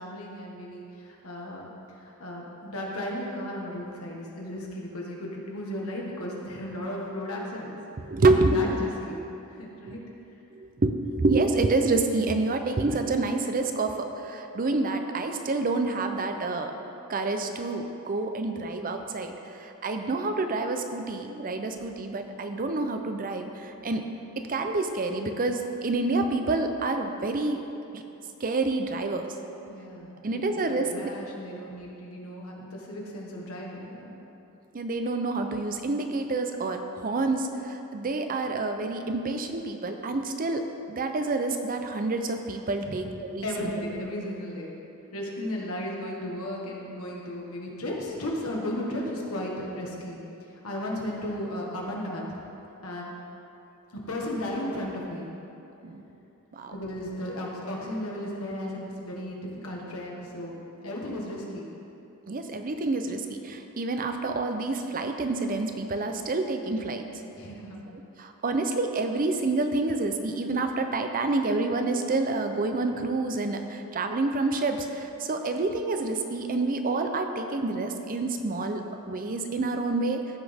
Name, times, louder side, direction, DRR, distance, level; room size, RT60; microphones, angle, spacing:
voice 1, 0.0-7.8 8.3-9.2 9.5-10.0 21.7-21.9 29.7-34.2 42.8-43.1 43.4-44.8 45.1-50.2 50.5-52.2 52.8-53.1 54.1-55.3 56.7-60.6 60.8-61.7 67.3-67.8, left 1 dB, 75° left, -2 dB, 1.7 m, -35 dB
voice 2, 8.1-8.6 10.6-10.9 11.2-16.7 17.1-23.5 23.8-24.0 24.5-27.6 27.9-28.0 28.4-29.3 30.2-30.9 31.5-31.6 34.7-40.6 40.9-43.7 55.8-56.0 56.5-56.7 62.3-67.0 68.2-78.8 79.1-80.2, right 3 dB, 40° right, 6 dB, 0.6 m, -28 dB
15.0 x 6.1 x 3.5 m, 2.9 s
head